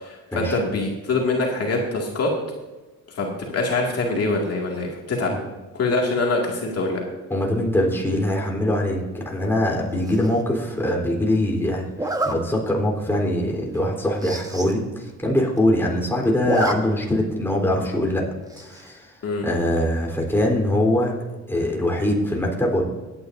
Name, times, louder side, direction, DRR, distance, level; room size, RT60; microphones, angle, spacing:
voice 1, 0.0-2.3 3.1-5.3 5.7-7.0 19.2-19.4, left 3 dB, 55° left, -1 dB, 2.2 m, -24 dB
voice 2, 7.3-18.2 18.6-19.1 19.4-21.1 21.5-22.8, left 1 dB, 10° left, -1 dB, 3.6 m, -23 dB
Zipper (clothing), 10.0-10.4 12.0-12.4 12.9-13.1 13.4-13.5 13.7-13.8 14.1-14.7 15.1-15.2 15.4-15.9 16.2-16.7 17.1-17.2 18.5-18.9, right 2 dB, 10° right, 1.3 m, -28 dB
17.5 x 9.8 x 2.6 m, 1.2 s
cardioid pair, 90°, 30 cm